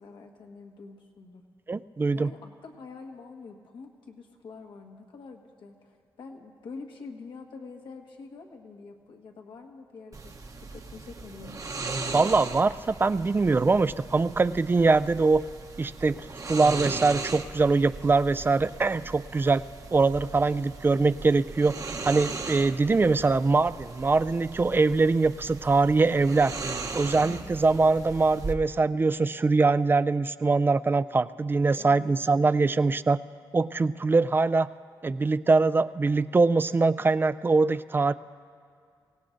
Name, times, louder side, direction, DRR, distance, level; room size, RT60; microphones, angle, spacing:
voice 1, 0.0-1.4 2.1-11.6 27.2-27.6 31.8-32.2, left 4 dB, 75° left, 2 dB, 1.5 m, -46 dB
voice 2, 1.7-2.3 12.1-15.5 15.8-16.2 16.4-19.6 19.9-21.7 22.0-26.5 26.9-33.2 33.5-34.7 35.0-38.1, right 3 dB, 25° right, 14 dB, 0.3 m, -23 dB
sound 1, 10.1-28.5, right 3 dB, 40° right, 0.9 m, -38 dB
24.0 x 17.0 x 2.6 m, 2.2 s
cardioid pair, 80°, 8 cm